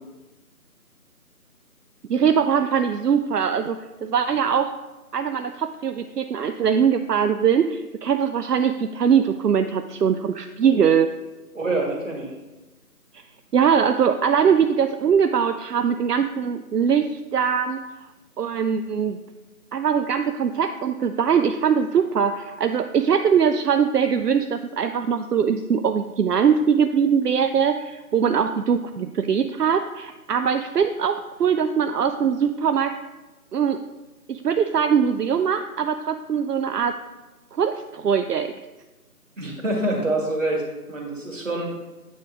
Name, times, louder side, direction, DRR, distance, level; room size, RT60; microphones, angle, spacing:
voice 1, 2.1-4.7 5.1-11.1 13.5-17.8 18.4-19.2 19.7-33.0 33.5-33.8 34.3-37.0 37.6-38.5, right 7 dB, 80° right, 8 dB, 0.5 m, -21 dB
voice 2, 11.5-12.3 39.4-41.8, right 2 dB, 55° right, 0 dB, 1.7 m, -26 dB
9.2 x 3.8 x 3.6 m, 1.1 s
figure-of-eight pair, 160°, 46 cm